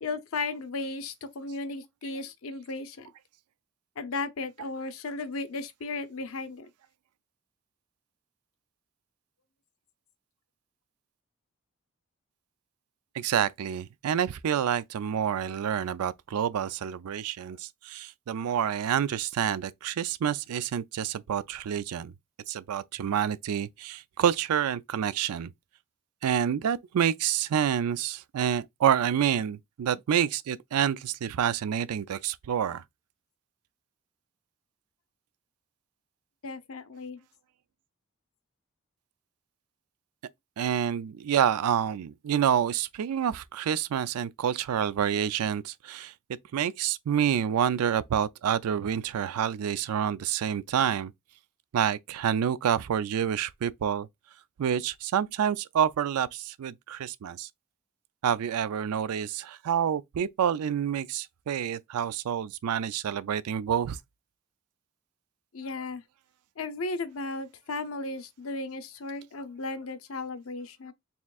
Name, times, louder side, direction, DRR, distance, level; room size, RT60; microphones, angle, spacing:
voice 1, 0.0-3.1 4.0-6.7 36.4-37.2 65.5-66.0 66.6-70.9, left 3 dB, 70° left, 0.6 m, -35 dB
voice 2, 13.1-22.1 22.5-25.5 26.2-32.8 40.6-46.1 46.5-51.1 51.7-54.1 54.6-57.5 58.2-64.0, right 9 dB, 85° right, 0.4 m, -28 dB
4.3 x 3.5 x 2.3 m
head